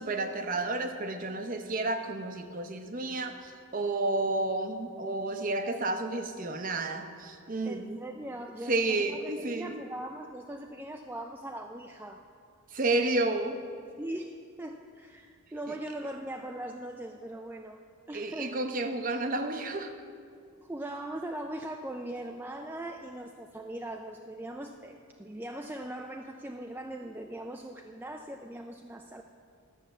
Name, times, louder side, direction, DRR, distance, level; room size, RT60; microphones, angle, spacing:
voice 1, 0.0-8.0 8.7-9.8 12.7-13.6 15.7-15.8 18.1-19.9, right 2 dB, 40° right, 7 dB, 0.7 m, -31 dB
voice 2, 7.6-12.2 14.0-17.8 18.1-18.6 20.6-29.2, right 1 dB, 10° right, 3 dB, 0.3 m, -40 dB
11.5 x 7.2 x 6.8 m, 2.3 s
head